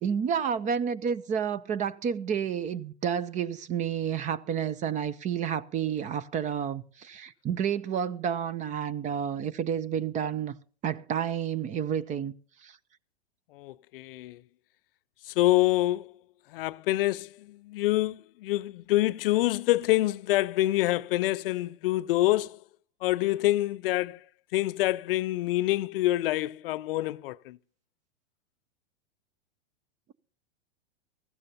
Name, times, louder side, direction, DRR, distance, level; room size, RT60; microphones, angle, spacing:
voice 1, 0.0-10.5 10.8-12.3 12.6-12.7, right 8 dB, 20° right, 0.5 m, -30 dB
voice 2, 13.5-14.4 15.3-16.1 16.5-22.6 23.0-24.2 24.5-27.6, left 16 dB, 55° left, 0.5 m, -26 dB
19.5 x 15.0 x 2.7 m
hypercardioid pair, 115°, 33 cm